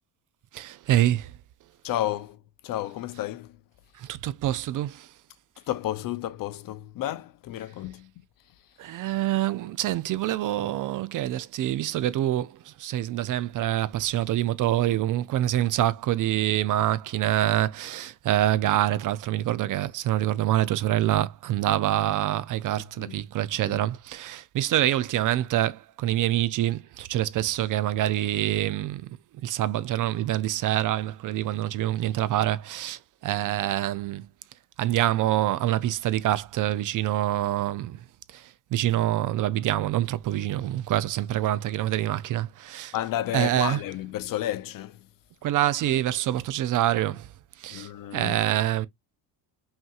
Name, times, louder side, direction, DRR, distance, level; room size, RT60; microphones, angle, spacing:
voice 1, 0.5-1.3 4.0-5.1 8.8-29.1 29.4-34.3 34.8-38.0 38.3-42.9 43.3-43.8 45.4-47.3 47.6-48.9, right 13 dB, 45° right, 0.4 m, -26 dB
voice 2, 1.8-3.6 5.6-8.1 23.0-23.2 23.6-23.8 42.9-45.1 47.7-48.4, left 13 dB, 50° left, 0.5 m, -32 dB
5.6 x 2.9 x 2.3 m
cardioid pair, 125°, 45 cm